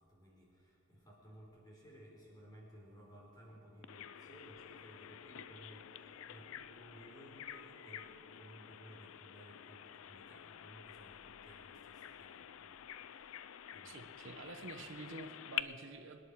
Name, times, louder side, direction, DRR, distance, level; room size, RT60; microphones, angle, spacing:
voice 1, 0.0-14.3, equal, 20° left, -3 dB, 3.9 m, -58 dB
sound 1, 2.1-10.1, right 3 dB, 35° right, 4.9 m, -68 dB
Bird vocalization bird call bird song, 3.8-15.6, left 11 dB, 70° left, 0.4 m, -49 dB
voice 2, 13.8-16.2, right 3 dB, 60° right, 6 dB, 1.0 m, -49 dB
24.5 x 10.5 x 4.7 m, 2.5 s
head